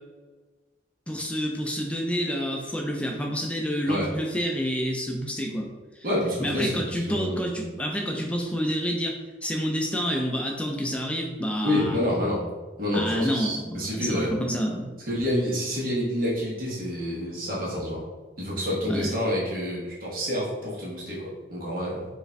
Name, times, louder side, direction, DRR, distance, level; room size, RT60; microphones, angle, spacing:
voice 1, 1.1-5.7 6.0-6.1 6.4-12.0 12.9-14.9 18.9-19.1, equal, 5° left, 1 dB, 0.4 m, -28 dB
voice 2, 6.0-7.5 11.6-12.4 12.8-14.3 15.1-18.0 18.4-22.0, left 1 dB, 50° right, -6 dB, 1.0 m, -28 dB
4.9 x 2.5 x 3.3 m, 1.4 s
head